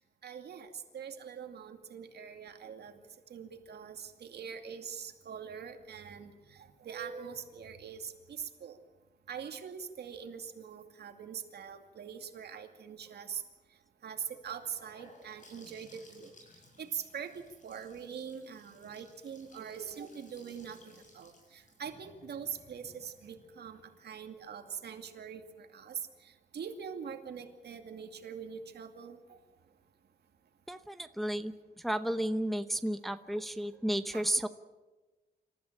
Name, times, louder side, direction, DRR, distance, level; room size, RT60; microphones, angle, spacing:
voice 1, 0.2-3.0 3.3-8.8 9.3-13.4 14.0-16.3 16.8-17.3 17.6-29.4 34.1-34.3, right 7 dB, 75° right, 5 dB, 2.4 m, -43 dB
Gurgling / Sink (filling or washing) / Bathtub (filling or washing), 14.5-24.3, left 2 dB, 50° left, 7.1 m, -60 dB
voice 2, 30.7-31.5 31.8-34.5, right 1 dB, ahead, 9 dB, 0.8 m, -32 dB
27.0 x 14.5 x 8.8 m, 1.2 s
wide cardioid pair, 155°, 17 cm